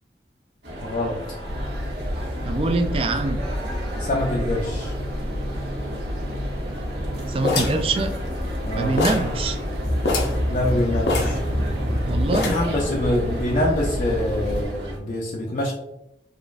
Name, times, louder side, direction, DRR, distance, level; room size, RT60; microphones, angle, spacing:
sound 1, 0.6-15.0, equal, 90° right, 1.2 m, -31 dB
voice 1, 0.8-1.2 4.0-4.9 8.7-9.0 10.5-11.4 12.5-15.7, left 1 dB, 45° left, -2 dB, 0.5 m, -25 dB
sound 2, 1.4-14.6, equal, 65° right, 0.9 m, -30 dB
voice 2, 2.5-3.5 7.3-8.1 8.8-9.6 12.0-12.6, right 3 dB, 30° right, 7 dB, 0.3 m, -24 dB
sound 3, 7.4-8.7 9.0-9.4 9.6-9.7 10.0-10.4 11.1-11.9 12.3-12.8, left 3 dB, 75° left, 0.7 m, -25 dB
5.0 x 2.5 x 2.3 m, 0.85 s
head